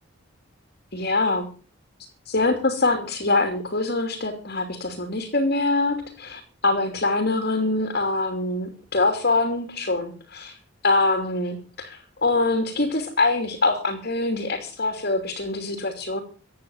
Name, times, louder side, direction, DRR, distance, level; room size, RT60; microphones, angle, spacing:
voice 1, 0.9-1.5 2.3-10.6 10.8-16.2, left 2 dB, 50° left, 6 dB, 3.0 m, -24 dB
15.5 x 9.8 x 7.2 m, 0.39 s
head